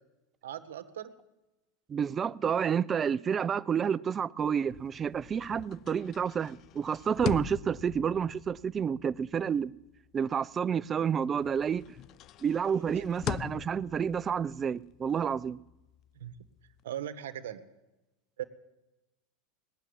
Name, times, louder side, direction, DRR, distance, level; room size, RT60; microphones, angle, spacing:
voice 1, 0.4-1.1 12.9-13.0 16.2-16.3 16.8-17.6 18.4-18.5, right 10 dB, 90° right, 1.5 m, -38 dB
voice 2, 1.9-9.7 10.1-11.8 12.4-15.6, right 7 dB, 25° right, 0.5 m, -29 dB
sound 1, 4.6-11.1 11.4-16.8, left 12 dB, 40° left, 0.5 m, -43 dB
19.5 x 7.3 x 9.6 m
supercardioid pair, 130°, 0 cm